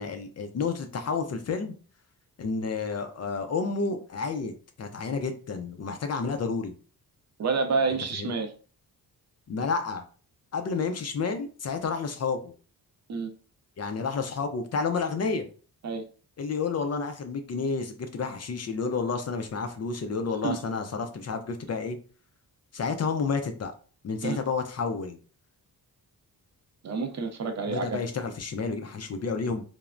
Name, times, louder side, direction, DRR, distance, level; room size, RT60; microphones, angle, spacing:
voice 1, 0.0-1.7 2.4-4.5 4.8-6.7 8.1-8.3 9.5-10.0 10.5-12.5 13.8-15.5 16.4-22.0 22.7-23.7 24.0-25.2 27.7-29.6, left 4 dB, 40° left, 7 dB, 0.4 m, -30 dB
voice 2, 7.4-8.5 13.1-13.3 15.8-16.0 20.4-20.6 24.2-24.4 26.8-28.0, right 4 dB, 45° right, 6 dB, 0.4 m, -28 dB
3.1 x 2.0 x 2.4 m, 0.39 s
cardioid pair, 100°, 39 cm